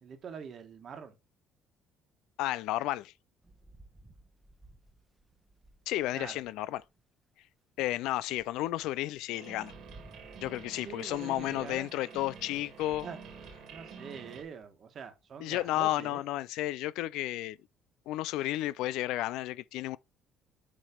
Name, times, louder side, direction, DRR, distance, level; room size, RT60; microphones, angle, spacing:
voice 1, 0.0-1.1 6.1-6.4 10.7-11.9 13.0-13.2 13.7-16.2, right 6 dB, 50° right, 1.4 m, -44 dB
voice 2, 2.4-3.1 5.9-6.8 7.8-9.7 10.4-13.1 15.4-17.6 18.1-20.0, left 15 dB, 85° left, 0.3 m, -32 dB
Rain, 3.4-6.9 7.5-7.6 8.1-14.7, right 2 dB, 10° right, 0.9 m, -58 dB
sound 1, 9.3-14.4, right 6 dB, 70° right, 2.0 m, -49 dB
7.1 x 3.2 x 5.0 m
cardioid pair, 100°, 0 cm